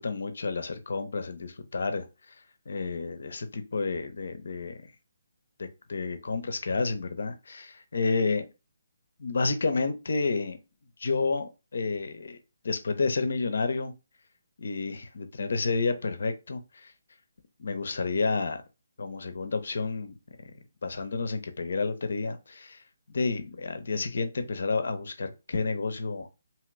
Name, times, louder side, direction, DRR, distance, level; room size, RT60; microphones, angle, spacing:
voice 1, 0.0-2.4 2.7-4.9 5.6-8.5 9.2-10.6 11.0-12.4 12.6-13.9 14.6-16.9 17.6-18.6 19.0-20.1 20.8-22.8 23.1-26.3, left 4 dB, 65° left, 8 dB, 0.6 m, -30 dB
2.8 x 2.4 x 3.1 m, 0.28 s
figure-of-eight pair, 145°, 0 cm